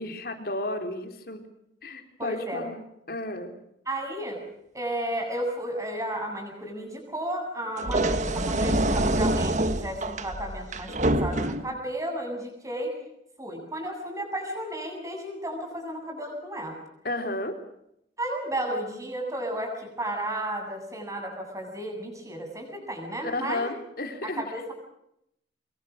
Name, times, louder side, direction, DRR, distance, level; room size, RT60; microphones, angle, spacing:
voice 1, 0.0-1.4 1.8-3.5 17.0-17.6 23.2-24.4, left 2 dB, 55° left, 6 dB, 3.7 m, -33 dB
voice 2, 2.2-2.6 3.9-4.4 4.7-12.9 13.4-16.8 18.2-23.7 24.2-24.7, right 1 dB, 20° right, 3 dB, 7.8 m, -33 dB
sound 1, 7.8-11.8, right 1 dB, 40° right, 1.6 m, -26 dB
25.5 x 23.0 x 6.5 m, 0.78 s
head